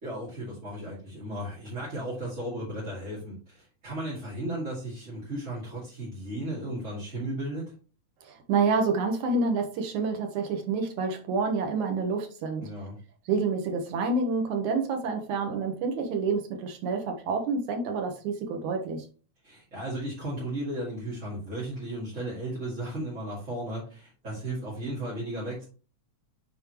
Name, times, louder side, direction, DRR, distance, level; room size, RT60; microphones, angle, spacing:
voice 1, 0.0-7.6 12.6-13.0 19.4-25.7, right 1 dB, 25° right, -8 dB, 2.4 m, -35 dB
voice 2, 8.2-12.7 13.3-19.1, right 4 dB, 80° right, 4 dB, 2.8 m, -28 dB
9.1 x 4.4 x 3.0 m, 0.37 s
omnidirectional pair, 3.4 m